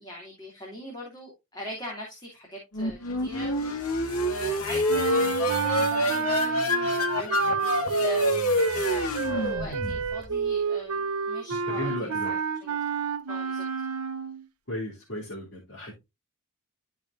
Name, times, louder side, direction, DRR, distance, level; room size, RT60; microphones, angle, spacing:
voice 1, 0.0-11.9 12.2-12.8 13.3-13.7, equal, 20° left, 2.8 m, -42 dB
sound 1, 2.7-10.4, left 1 dB, 80° left, 1.9 m, -27 dB
sound 2, 4.9-14.4, right 6 dB, 80° right, 0.9 m, -29 dB
voice 2, 11.7-12.3 14.7-15.9, left 1 dB, 55° left, 3.2 m, -35 dB
12.5 x 5.0 x 2.6 m
head